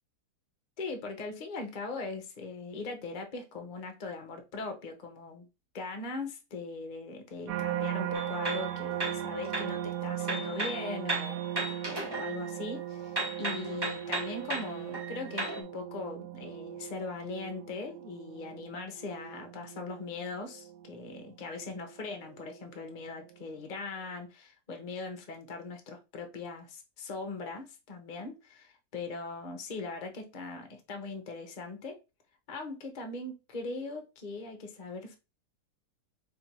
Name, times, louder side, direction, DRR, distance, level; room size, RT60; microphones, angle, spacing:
voice 1, 0.8-5.5 5.7-11.4 11.8-32.0 32.5-35.2, left 3 dB, 35° left, 0.8 m, -40 dB
sound 1, 7.5-22.7 23.2-23.6, right 11 dB, 80° right, 1.2 m, -38 dB
sound 2, 8.1-9.8 10.2-12.8 13.2-15.6, right 2 dB, 25° right, 0.5 m, -36 dB
3.6 x 2.6 x 4.4 m
omnidirectional pair, 1.8 m